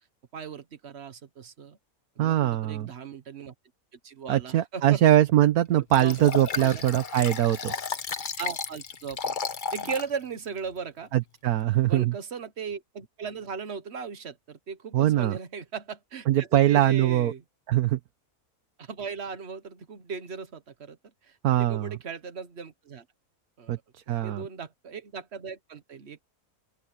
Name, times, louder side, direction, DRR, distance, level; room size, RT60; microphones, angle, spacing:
voice 1, 0.3-1.8 2.2-3.5 4.0-5.0 6.0-6.2 6.6-6.8 8.4-9.4 9.7-11.1 11.9-17.4 18.8-21.0 21.2-23.1 23.6-23.7 24.2-26.2, right 6 dB, 45° right, 1.4 m, -37 dB
voice 2, 2.2-2.9 4.3-7.7 11.1-12.1 14.9-15.4 16.3-17.3 17.7-18.0 21.4-22.0 23.7-23.8 24.1-24.4, right 13 dB, 75° right, 1.3 m, -22 dB
Liquid, 5.9-10.1 10.6-10.7, left 5 dB, 40° left, 0.9 m, -33 dB
open air
omnidirectional pair, 1.6 m